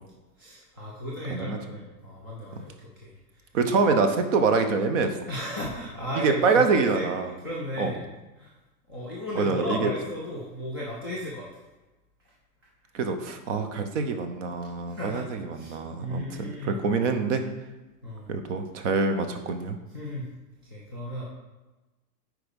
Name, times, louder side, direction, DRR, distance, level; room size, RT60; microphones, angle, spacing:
voice 1, 0.4-3.5 5.3-8.0 8.4-8.5 8.9-11.5 14.9-15.2 15.5-16.8 18.0-18.3 19.9-20.3 20.6-21.3, equal, 15° right, -5 dB, 0.3 m, -35 dB
voice 2, 3.5-5.1 6.1-7.3 7.8-7.9 9.4-9.9 12.9-17.4 18.3-19.8, right 4 dB, 45° right, 7 dB, 1.0 m, -25 dB
8.5 x 4.8 x 5.3 m, 1.1 s
supercardioid pair, 165°, 50 cm